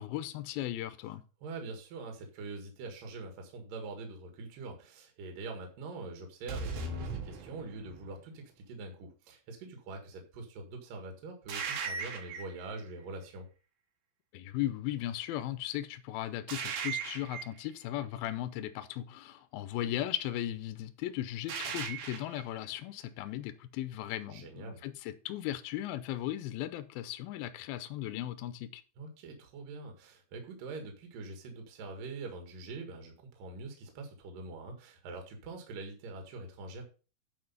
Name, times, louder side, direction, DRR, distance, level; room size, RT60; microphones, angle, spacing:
voice 1, 0.0-1.2 14.3-28.8, left 13 dB, 85° left, 2.5 m, -37 dB
voice 2, 1.4-13.5 24.3-24.8 29.0-36.9, right 3 dB, 65° right, 3.2 m, -44 dB
sound 1, 6.5-8.1 11.5-12.7 16.5-17.6 21.5-22.4, right 5 dB, 85° right, 3.7 m, -38 dB
10.0 x 4.7 x 5.4 m
omnidirectional pair, 4.4 m